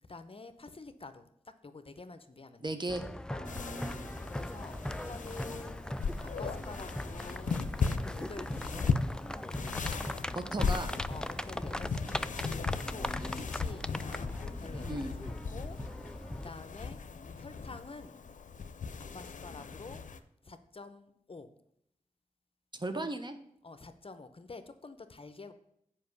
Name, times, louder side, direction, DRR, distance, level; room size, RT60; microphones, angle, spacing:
voice 1, 0.0-2.8 3.3-3.6 4.3-5.9 6.2-7.6 8.2-8.9 11.1-12.2 12.9-14.3 14.6-17.0 17.4-18.2 19.1-20.0 20.4-21.5 23.6-25.5, left 3 dB, 45° left, 10 dB, 0.8 m, -48 dB
voice 2, 2.6-3.0 3.4-4.1 10.3-10.9 12.8-13.4 14.8-15.1 22.7-23.4, right 2 dB, 35° right, 7 dB, 1.1 m, -37 dB
sound 1, 2.9-16.5, left 1 dB, 5° left, 0.4 m, -39 dB
sound 2, 3.4-20.2, left 5 dB, 80° left, 0.6 m, -37 dB
7.5 x 5.2 x 6.8 m, 0.75 s
cardioid pair, 50°, 13 cm